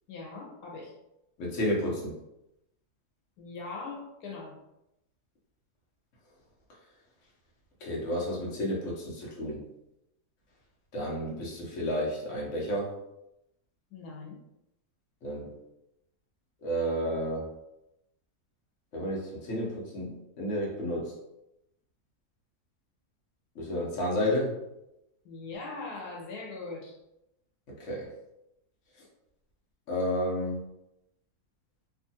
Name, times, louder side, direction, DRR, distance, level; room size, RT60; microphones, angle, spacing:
voice 1, 0.1-0.9 3.4-4.6 13.9-14.4 25.2-27.0, left 3 dB, 90° left, -1 dB, 1.3 m, -41 dB
voice 2, 1.4-2.1 7.8-9.6 10.9-12.9 15.2-15.5 16.6-17.5 18.9-21.2 23.5-24.6 27.8-28.1 29.9-30.6, equal, 55° left, -4 dB, 1.1 m, -31 dB
3.0 x 2.4 x 2.7 m, 0.87 s
omnidirectional pair, 1.7 m